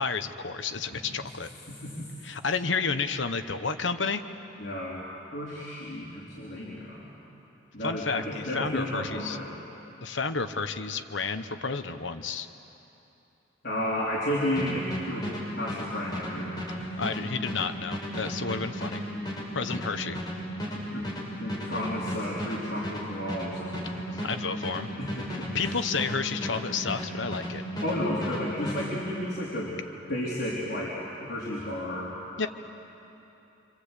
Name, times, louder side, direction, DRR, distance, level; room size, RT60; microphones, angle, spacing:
voice 1, 0.0-1.5 2.2-4.2 7.8-9.4 10.0-12.5 17.0-19.0 19.5-20.2 24.2-24.9 25.5-27.6 32.4-32.5, left 4 dB, 80° left, 9 dB, 1.1 m, -31 dB
voice 2, 1.7-2.1 4.6-5.0 5.3-7.1 7.7-9.5 13.6-17.0 18.4-18.6 20.7-21.1 21.4-24.0 25.0-25.7 27.8-32.2, left 1 dB, 55° left, -7 dB, 4.2 m, -33 dB
sound 1, 14.6-27.5 27.8-28.9, equal, 20° left, 6.1 m, -34 dB
27.0 x 26.0 x 8.4 m, 3.0 s
head